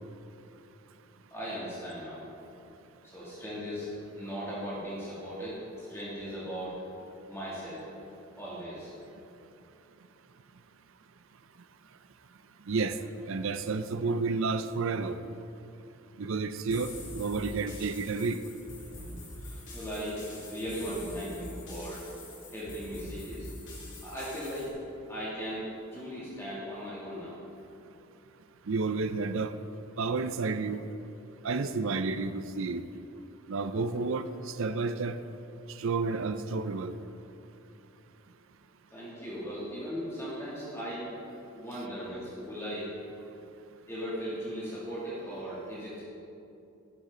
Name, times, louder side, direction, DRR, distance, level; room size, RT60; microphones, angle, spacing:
voice 1, 1.3-2.2 3.0-3.9 4.1-6.7 7.3-7.8 8.4-8.9 19.4-22.1 22.5-23.5 24.0-24.7 25.1-25.6 25.9-27.4 38.9-41.1 41.5-42.9 43.9-46.0, equal, 10° left, -9 dB, 2.5 m, -38 dB
voice 2, 12.7-13.0 13.3-15.2 16.2-18.4 28.7-29.6 30.0-30.8 31.4-32.8 33.5-35.2 35.7-36.9, right 4 dB, 65° right, 11 dB, 0.5 m, -31 dB
sound 1, 16.7-24.7, left 1 dB, 55° left, 2.9 m, -44 dB
11.5 x 11.0 x 3.9 m, 2.8 s
head